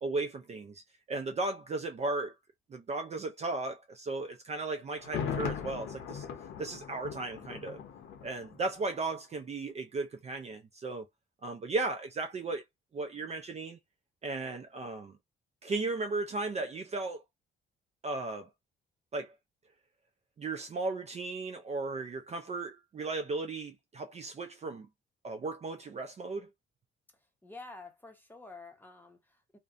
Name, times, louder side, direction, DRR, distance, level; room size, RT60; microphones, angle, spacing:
voice 1, 0.0-0.8 1.1-2.3 2.7-6.3 6.6-7.8 8.2-11.0 11.4-12.6 12.9-13.8 14.2-15.1 15.6-17.2 18.0-18.5 19.1-19.3 20.4-24.9 25.2-26.5, right 3 dB, 35° right, 0.4 m, -35 dB
Thunder, 5.0-8.9 9.2-9.3, left 7 dB, 70° left, 0.7 m, -39 dB
voice 2, 27.4-29.6, left 3 dB, 10° left, 0.8 m, -49 dB
2.5 x 2.1 x 2.4 m
cardioid pair, 90°, 20 cm